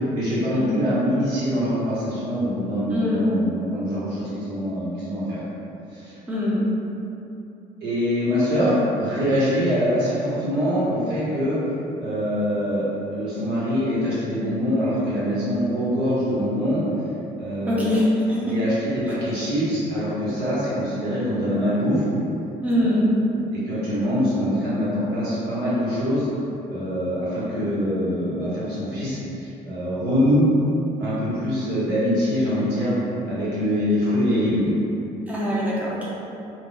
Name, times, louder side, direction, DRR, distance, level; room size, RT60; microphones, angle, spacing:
voice 1, 0.1-5.4 5.9-6.2 7.8-11.6 12.0-16.9 17.3-17.9 18.4-22.0 22.8-22.9 23.5-26.3 26.7-30.5 31.0-32.9 33.3-34.7, equal, 80° right, -10 dB, 1.3 m, -24 dB
voice 2, 2.9-3.3 6.3-6.7 17.7-18.5 22.6-23.1 35.3-36.0, left 1 dB, 10° right, -6 dB, 0.6 m, -22 dB
2.5 x 2.4 x 3.7 m, 2.9 s
cardioid pair, 110°, 17 cm